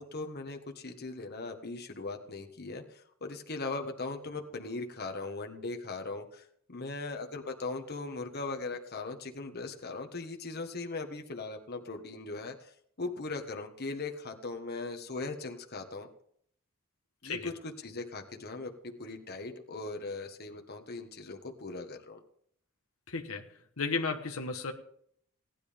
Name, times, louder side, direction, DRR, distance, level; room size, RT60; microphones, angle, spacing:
voice 1, 0.0-6.4 6.7-12.7 13.0-16.1 17.2-17.5 17.8-22.2, left 3 dB, 50° left, 4 dB, 1.4 m, -39 dB
voice 2, 23.1-23.5 23.8-24.7, left 4 dB, 75° left, 4 dB, 1.3 m, -33 dB
17.5 x 11.0 x 3.6 m, 0.65 s
head